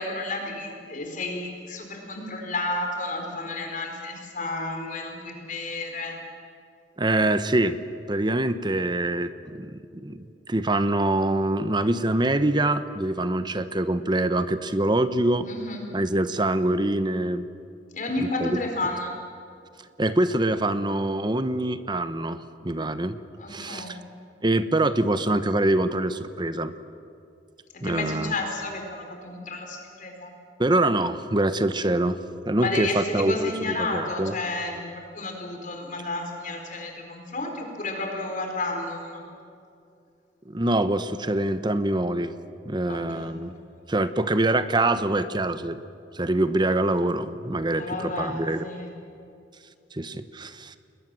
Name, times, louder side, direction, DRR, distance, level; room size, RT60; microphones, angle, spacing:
voice 1, 0.0-6.2 15.4-15.8 17.9-19.1 23.4-24.0 27.8-30.3 32.6-39.2 42.9-43.3 47.8-48.9, left 2 dB, 45° left, 3 dB, 4.5 m, -32 dB
voice 2, 7.0-7.8 8.1-15.5 15.9-17.5 18.2-18.6 20.0-23.2 23.5-24.0 24.4-26.7 27.8-28.3 30.6-32.2 32.5-34.3 40.5-42.3 42.6-43.5 43.9-45.8 46.1-48.7 49.9-50.8, right 1 dB, 25° right, 12 dB, 1.0 m, -25 dB
29.5 x 20.5 x 7.7 m, 2.5 s
head